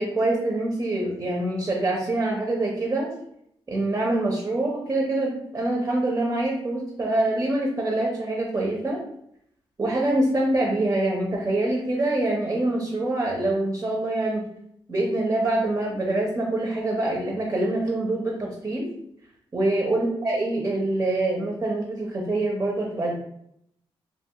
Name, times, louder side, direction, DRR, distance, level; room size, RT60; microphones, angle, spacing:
voice 1, 0.0-3.1 3.7-9.0 9.8-14.5 14.9-18.9 19.5-23.1, right 2 dB, 25° right, -1 dB, 0.5 m, -25 dB
2.8 x 2.2 x 2.8 m, 0.74 s
cardioid pair, 120°, 10 cm